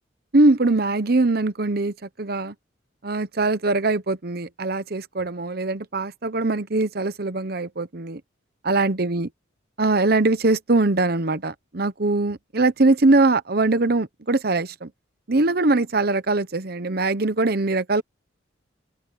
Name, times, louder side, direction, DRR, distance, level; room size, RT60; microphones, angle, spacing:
voice 1, 0.3-2.5 3.0-8.2 8.6-9.3 9.8-14.9 15.3-18.0, right 2 dB, 50° right, 0.9 m, -22 dB
open air
head